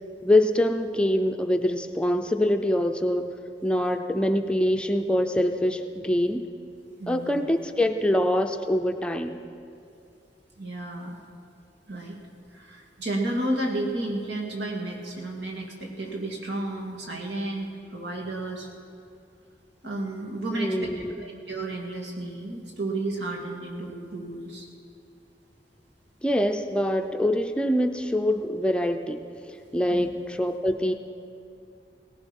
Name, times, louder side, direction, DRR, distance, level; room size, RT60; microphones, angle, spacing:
voice 1, 0.2-3.3 3.6-6.5 7.1-9.4 20.5-21.2 26.2-29.2 29.7-30.9, left 1 dB, 5° left, 6 dB, 0.5 m, -24 dB
voice 2, 7.0-7.4 10.6-11.1 11.9-12.1 12.5-18.7 19.8-24.7 29.9-30.1, right 2 dB, 85° right, 0 dB, 2.5 m, -32 dB
18.0 x 15.0 x 5.4 m, 2.5 s
head